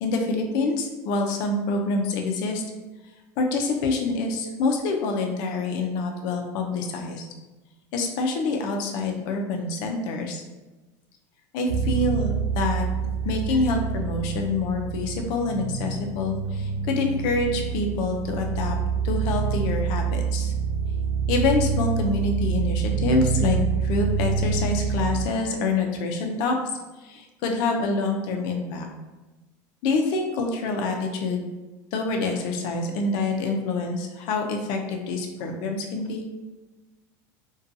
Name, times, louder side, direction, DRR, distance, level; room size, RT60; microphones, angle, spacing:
voice 1, 0.0-2.6 3.4-7.2 7.9-10.4 11.5-12.8 13.2-18.8 19.0-20.5 21.3-26.6 27.0-28.9 29.8-31.5 31.9-36.2, left 3 dB, 50° left, 2 dB, 0.4 m, -26 dB
sound 1, 11.7-25.3, right 6 dB, 70° right, 0.4 m, -27 dB
2.6 x 2.2 x 2.6 m, 1.1 s
supercardioid pair, 165°, 10 cm